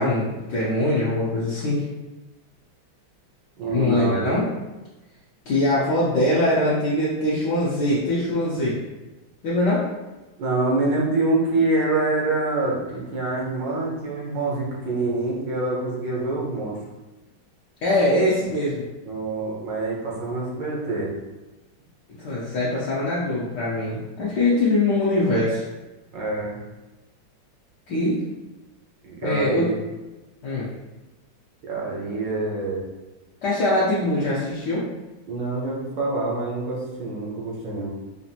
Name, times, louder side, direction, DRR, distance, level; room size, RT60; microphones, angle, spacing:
voice 1, 0.0-1.9 3.7-4.5 5.5-8.8 9.4-9.8 17.8-18.8 22.2-25.7 27.9-28.2 29.2-29.6 30.4-30.7 33.4-34.8, left 1 dB, 65° left, -8 dB, 1.2 m, -22 dB
voice 2, 3.6-4.4 10.4-16.8 19.0-21.1 26.1-26.6 29.0-29.8 31.7-32.8 35.3-37.9, right 2 dB, 65° right, -3 dB, 1.6 m, -26 dB
5.0 x 2.5 x 2.7 m, 1.1 s
omnidirectional pair, 2.2 m